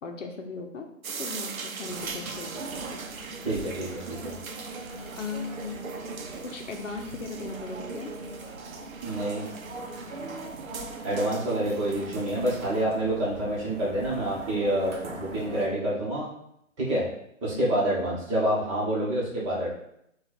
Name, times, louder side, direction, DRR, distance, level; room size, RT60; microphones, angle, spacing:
voice 1, 0.0-0.9 1.2-3.0 5.2-5.9 6.4-8.1 17.5-17.8, left 4 dB, 65° left, 3 dB, 0.8 m, -38 dB
sound 1, 1.0-12.8, right 5 dB, 80° right, 0.7 m, -40 dB
sound 2, 1.9-15.7, right 2 dB, 60° right, 1.0 m, -41 dB
voice 2, 3.4-4.3 9.0-9.4 11.0-16.3 16.8-17.0 17.4-19.7, right 1 dB, 20° right, -6 dB, 1.2 m, -27 dB
4.3 x 2.5 x 4.1 m, 0.77 s
hypercardioid pair, 150°, 40 cm